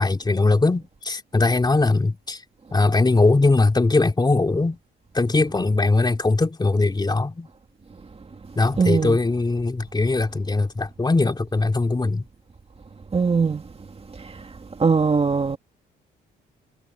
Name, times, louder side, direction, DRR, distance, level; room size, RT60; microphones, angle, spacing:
voice 1, 0.0-2.4 2.7-4.8 5.1-7.5 8.6-12.2, left 3 dB, 20° left, 3.3 m, -20 dB
voice 2, 8.8-9.2 13.1-13.6 14.8-15.6, right 5 dB, 30° right, 2.3 m, -20 dB
cardioid pair, 90°, 20 cm